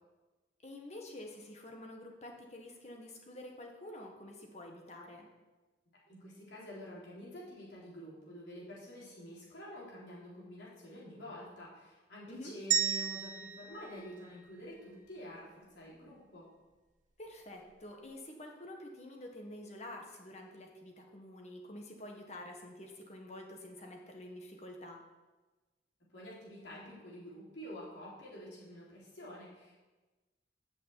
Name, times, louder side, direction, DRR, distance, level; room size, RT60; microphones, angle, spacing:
voice 1, 0.6-5.3 12.3-12.5 17.2-25.0, left 1 dB, 40° left, 2 dB, 1.6 m, -48 dB
voice 2, 6.1-16.5 26.1-29.8, equal, 80° left, -6 dB, 3.6 m, -48 dB
sound 1, 12.7-15.0, right 8 dB, 45° right, 0.7 m, -35 dB
8.7 x 6.4 x 7.9 m, 1.2 s
head